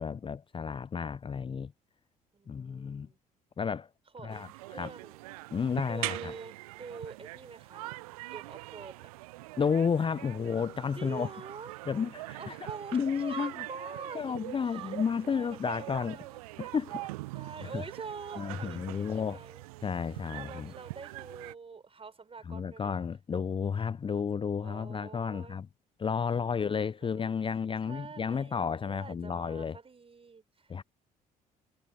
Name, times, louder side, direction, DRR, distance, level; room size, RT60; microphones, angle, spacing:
voice 1, 0.0-1.7 2.5-3.1 3.6-3.9 4.2-4.9 5.5-6.3 9.6-11.3 11.9-12.4 12.9-13.5 14.1-16.2 16.6-17.1 17.7-17.8 18.4-19.4 19.8-20.7 22.5-25.7 26.0-29.8 30.7-30.8, left 6 dB, 25° left, 0.7 m, -32 dB
voice 2, 2.3-3.2 4.1-5.2 5.8-8.0 8.3-9.1 11.0-11.7 12.4-14.3 14.6-15.0 15.3-16.4 17.3-19.7 20.3-23.1 24.6-25.6 27.0-30.8, right 5 dB, 30° right, 4.7 m, -46 dB
sound 1, 4.3-21.5, right 21 dB, 75° right, 0.4 m, -43 dB
figure-of-eight pair, 50°, 19 cm